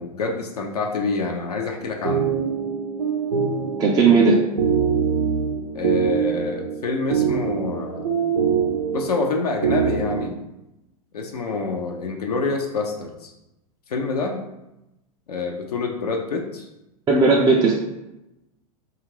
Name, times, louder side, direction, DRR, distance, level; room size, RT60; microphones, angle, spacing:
voice 1, 0.0-2.3 5.7-8.5 8.9-10.4 11.1-13.3 13.9-14.4 15.3-16.7, left 4 dB, 85° left, 2 dB, 0.5 m, -27 dB
sound 1, 1.8-10.3, right 6 dB, 85° right, 0.5 m, -24 dB
voice 2, 3.8-4.4 17.1-17.7, right 4 dB, 20° right, -2 dB, 0.3 m, -16 dB
2.8 x 2.4 x 3.0 m, 0.91 s
hypercardioid pair, 100°, 19 cm